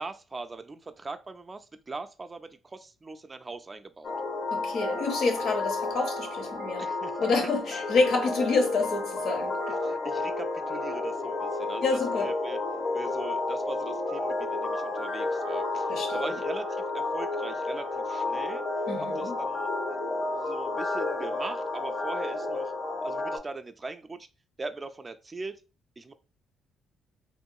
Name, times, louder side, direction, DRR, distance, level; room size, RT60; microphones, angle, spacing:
voice 1, 0.0-4.1 5.4-5.6 6.8-7.2 9.7-12.6 12.9-18.6 19.2-19.7 20.3-22.7 23.0-24.3 24.6-25.6 26.0-26.1, right 3 dB, 25° right, 0.3 m, -40 dB
sound 1, 4.0-23.4, left 2 dB, 45° left, 0.5 m, -31 dB
voice 2, 4.5-6.8 7.2-9.6 11.8-12.3 15.9-16.3 18.9-19.3, left 3 dB, 75° left, 0.8 m, -28 dB
3.0 x 2.2 x 2.7 m
cardioid pair, 90°, 0 cm